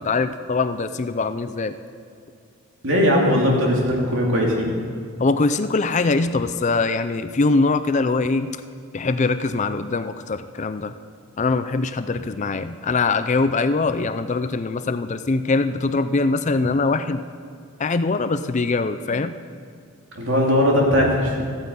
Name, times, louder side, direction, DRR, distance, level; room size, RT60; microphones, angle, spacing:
voice 1, 0.0-1.7 5.2-8.6 8.9-10.9 11.4-17.2 17.8-19.3, left 3 dB, 35° left, 11 dB, 0.5 m, -22 dB
voice 2, 2.8-4.7 20.1-21.4, equal, 60° right, -1 dB, 3.0 m, -19 dB
14.0 x 9.2 x 8.3 m, 2.3 s
head